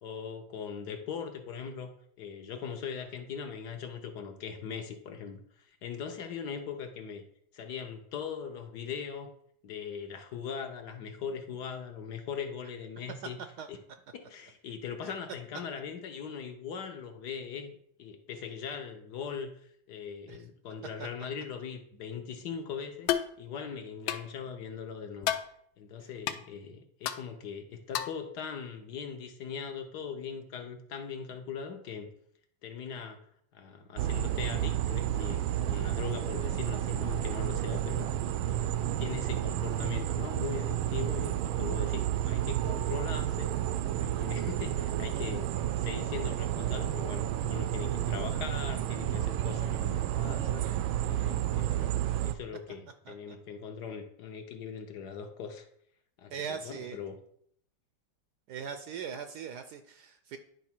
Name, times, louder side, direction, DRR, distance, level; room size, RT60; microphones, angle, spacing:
voice 1, 0.0-1.9 2.2-7.2 7.5-9.3 9.6-13.4 13.7-13.8 14.1-19.5 19.9-23.1 23.4-25.3 25.8-32.1 32.6-33.2 33.5-38.1 38.5-43.5 43.9-45.5 45.8-50.7 51.0-51.9 52.2-55.7 56.2-57.2, left 6 dB, 60° left, 5 dB, 1.3 m, -40 dB
sound 1, 23.1-23.3 24.1-24.3 25.2-25.5 26.3-26.4 27.1-27.2 27.9-28.2, left 11 dB, 80° left, 1.4 m, -30 dB
sound 2, 34.0-52.3, right 12 dB, 85° right, 1.4 m, -31 dB
voice 2, 53.1-53.4 56.3-57.0 58.5-60.4, right 7 dB, 70° right, 8 dB, 1.0 m, -40 dB
10.0 x 3.5 x 6.0 m, 0.68 s
omnidirectional pair, 2.2 m